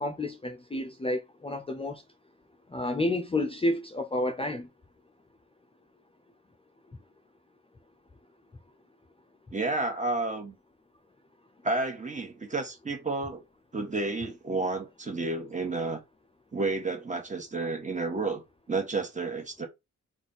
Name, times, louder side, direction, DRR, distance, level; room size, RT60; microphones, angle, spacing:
voice 1, 0.0-2.0 2.7-4.7, left 1 dB, 20° left, 0.4 m, -30 dB
voice 2, 9.5-10.5 11.6-13.4 13.7-16.0 16.5-19.7, right 3 dB, 25° right, 1.3 m, -31 dB
4.1 x 2.4 x 4.0 m
wide cardioid pair, 140°, 31 cm